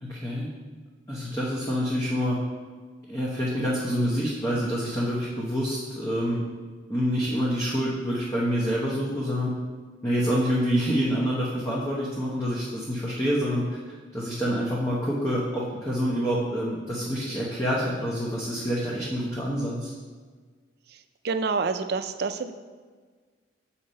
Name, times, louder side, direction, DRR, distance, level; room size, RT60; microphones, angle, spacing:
voice 1, 0.0-0.5 1.1-2.4 3.1-6.5 6.9-9.6 10.0-19.9, equal, 15° left, -6 dB, 0.9 m, -27 dB
voice 2, 21.2-22.5, right 4 dB, 55° right, 10 dB, 0.4 m, -27 dB
6.6 x 4.3 x 5.3 m, 1.5 s
head